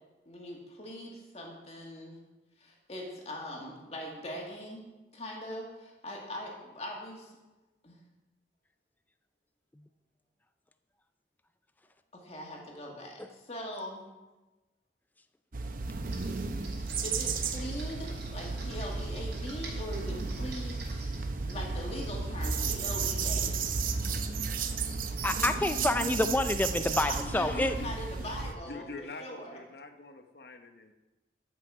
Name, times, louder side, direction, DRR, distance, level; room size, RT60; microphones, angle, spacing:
voice 1, 0.3-2.2 2.6-4.9 5.1-7.4 7.8-8.0 12.1-14.0 17.0-21.2 21.5-23.7 27.1-29.6, equal, 35° left, -1 dB, 1.9 m, -41 dB
sound 1, 15.5-28.5, right 4 dB, 50° right, 0.7 m, -33 dB
Computer keyboard, 16.0-22.2, right 3 dB, 90° right, 3.2 m, -48 dB
voice 2, 25.2-27.7, left 1 dB, 10° left, 9 dB, 0.3 m, -28 dB
voice 3, 26.8-27.9 28.2-28.3 28.7-30.9, left 2 dB, 60° left, 7 dB, 0.9 m, -45 dB
13.5 x 6.0 x 4.8 m, 1.1 s
head